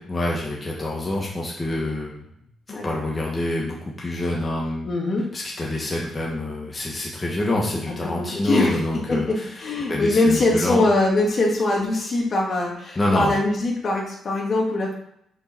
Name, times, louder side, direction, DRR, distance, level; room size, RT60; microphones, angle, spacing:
voice 1, 0.0-2.3 2.7-4.9 5.3-9.6 9.9-10.9 13.0-13.4, left 1 dB, 25° left, -3 dB, 2.0 m, -26 dB
voice 2, 4.8-5.2 8.2-8.8 9.1-15.0, left 2 dB, 45° left, -1 dB, 2.4 m, -22 dB
6.9 x 4.7 x 6.2 m, 0.73 s
cardioid pair, 90°, 0 cm